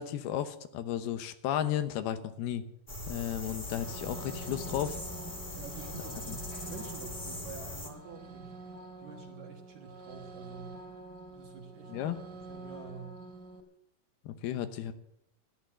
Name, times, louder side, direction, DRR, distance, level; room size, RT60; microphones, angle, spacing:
voice 1, 0.0-2.6 3.1-5.0 11.9-12.2 14.2-14.9, left 11 dB, 80° left, 10 dB, 2.8 m, -34 dB
sound 1, 2.9-7.9, left 1 dB, 20° left, 1.9 m, -41 dB
sound 2, 3.6-13.6, right 3 dB, 30° right, 2.4 m, -47 dB
voice 2, 5.6-8.6 9.0-10.8 11.3-13.2, right 6 dB, 55° right, 1 dB, 2.5 m, -48 dB
14.0 x 11.0 x 7.6 m, 0.79 s
omnidirectional pair, 4.5 m